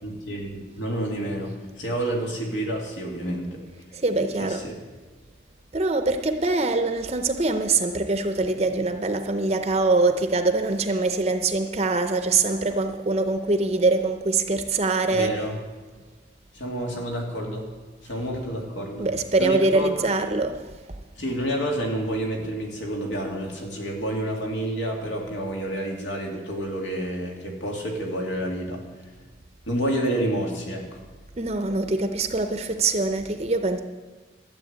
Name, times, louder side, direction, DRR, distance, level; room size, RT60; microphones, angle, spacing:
voice 1, 0.0-3.6 4.4-4.8 15.1-15.6 16.5-17.7 18.0-19.1 19.4-20.1 21.2-28.8 29.7-31.0, right 1 dB, 80° left, 2.5 m, -29 dB
voice 2, 4.0-4.6 5.7-15.3 19.0-20.6 31.4-33.8, right 3 dB, 35° right, 0.6 m, -23 dB
12.5 x 7.3 x 8.6 m
head